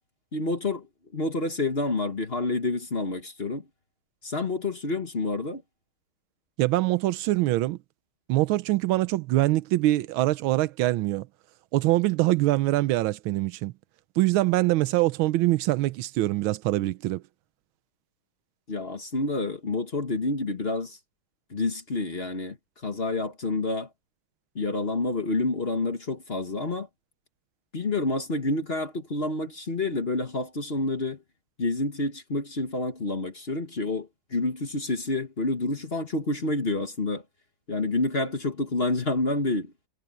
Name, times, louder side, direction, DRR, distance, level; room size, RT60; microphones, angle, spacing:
voice 1, 0.3-0.9 1.1-3.6 4.2-5.6 18.7-21.0 21.5-22.6 22.8-23.9 24.5-26.9 27.7-31.2 31.6-37.2 37.7-39.7, left 2 dB, 30° left, 1.5 m, -28 dB
voice 2, 6.6-7.8 8.3-11.3 11.7-13.7 14.2-17.2, right 17 dB, 75° right, 1.4 m, -24 dB
omnidirectional pair, 2.4 m